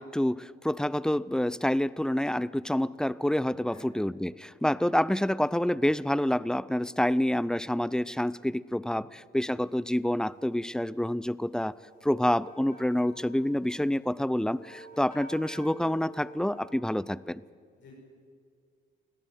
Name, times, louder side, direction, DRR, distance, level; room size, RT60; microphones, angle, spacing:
voice 1, 0.0-11.7 12.0-17.4, left 1 dB, 5° left, 20 dB, 0.5 m, -28 dB
voice 2, 3.6-4.0 4.8-4.9 8.9-9.1 17.8-17.9, left 5 dB, 65° left, -4 dB, 7.3 m, -53 dB
sound 1, 11.7-16.7, right 1 dB, 45° left, 7.0 m, -49 dB
20.0 x 14.0 x 9.3 m, 2.1 s
cardioid pair, 90°, 20 cm